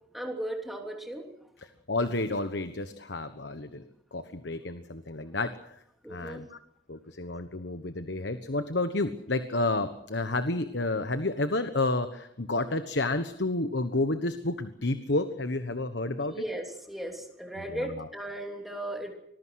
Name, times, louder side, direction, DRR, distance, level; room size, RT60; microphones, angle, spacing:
voice 1, 0.1-1.3 6.0-6.4 16.3-19.1, right 1 dB, ahead, 2 dB, 3.1 m, -36 dB
voice 2, 1.9-3.8 4.1-5.7 6.1-6.6 6.9-16.3 17.7-18.1, left 2 dB, 70° left, 10 dB, 1.3 m, -30 dB
25.5 x 20.5 x 6.5 m, 0.77 s
head